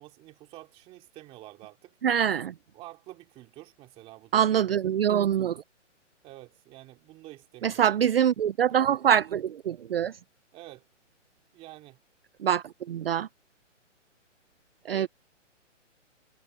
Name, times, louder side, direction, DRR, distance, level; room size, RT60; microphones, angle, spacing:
voice 1, 0.0-1.9 2.7-4.8 6.2-7.9 10.5-10.8 11.5-12.0 14.8-15.1, right 17 dB, 15° right, 2.5 m, -48 dB
voice 2, 2.0-2.5 4.3-5.6 7.6-10.2 12.4-13.3 14.9-15.1, right 9 dB, 50° right, 0.6 m, -24 dB
hypercardioid pair, 165°, 37 cm